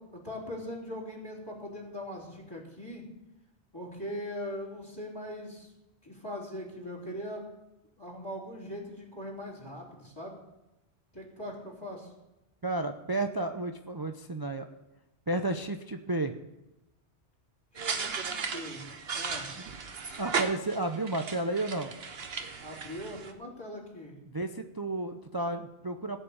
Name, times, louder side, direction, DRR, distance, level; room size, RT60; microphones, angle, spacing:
voice 1, 0.0-3.0 3.7-5.7 6.0-7.5 8.0-10.4 11.1-12.1 17.7-19.5 22.5-24.2, equal, 20° left, -1 dB, 3.0 m, -41 dB
voice 2, 12.6-14.7 15.3-16.3 20.2-21.9 24.3-26.2, right 2 dB, 25° right, 6 dB, 0.5 m, -32 dB
sound 1, 17.7-23.3, right 5 dB, 65° right, 1.3 m, -36 dB
15.5 x 5.6 x 8.5 m, 0.95 s
omnidirectional pair, 1.1 m